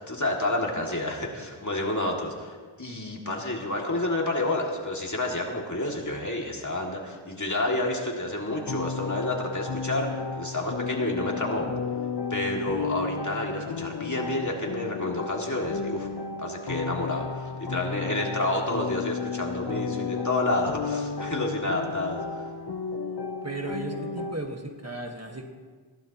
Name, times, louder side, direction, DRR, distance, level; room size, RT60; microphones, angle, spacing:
voice 1, 0.0-11.7 12.3-16.1 16.4-22.2, left 1 dB, 35° left, -1 dB, 2.5 m, -29 dB
sound 1, 8.5-24.4, left 5 dB, 55° left, 0.8 m, -33 dB
voice 2, 23.4-25.5, right 2 dB, 30° right, 2 dB, 1.6 m, -35 dB
21.0 x 16.0 x 3.0 m, 1.5 s
wide cardioid pair, 60°, 48 cm